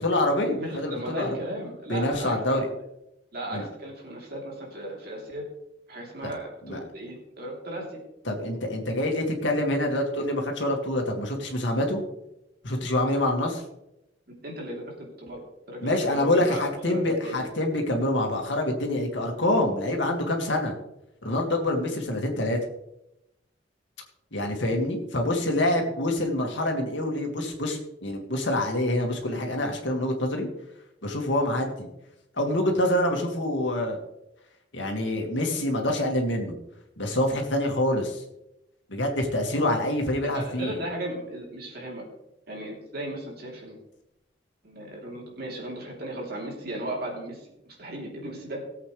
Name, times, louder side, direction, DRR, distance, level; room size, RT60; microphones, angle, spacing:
voice 1, 0.0-1.4 1.9-2.7 3.5-3.7 6.2-6.3 6.6-6.8 8.3-12.0 12.6-13.6 15.8-20.8 21.2-22.6 24.3-30.5 31.0-31.9 32.4-34.0 34.7-36.5 37.0-38.2 38.9-40.8, left 1 dB, 80° left, 2 dB, 2.3 m, -26 dB
voice 2, 0.6-2.6 3.3-5.4 5.9-8.0 14.3-15.4 15.7-17.5 40.2-42.0 42.5-43.8 44.6-48.6, right 1 dB, 55° right, -1 dB, 3.4 m, -36 dB
18.5 x 8.1 x 3.4 m, 0.86 s
head